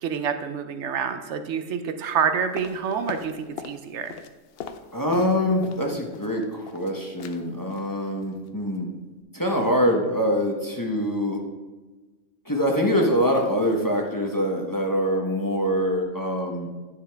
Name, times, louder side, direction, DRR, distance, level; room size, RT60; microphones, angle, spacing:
voice 1, 0.0-4.2, right 7 dB, 70° right, 8 dB, 0.9 m, -27 dB
sound 1, 2.6-3.8 4.1-5.9 6.1-6.9 7.2-7.4 7.7-7.9 8.2-8.5 8.7-8.8, left 7 dB, 60° left, 0.7 m, -39 dB
voice 2, 4.9-8.9 9.3-11.4 12.5-16.7, equal, 20° left, 0 dB, 0.7 m, -24 dB
9.9 x 6.7 x 3.4 m, 1.2 s
omnidirectional pair, 1.3 m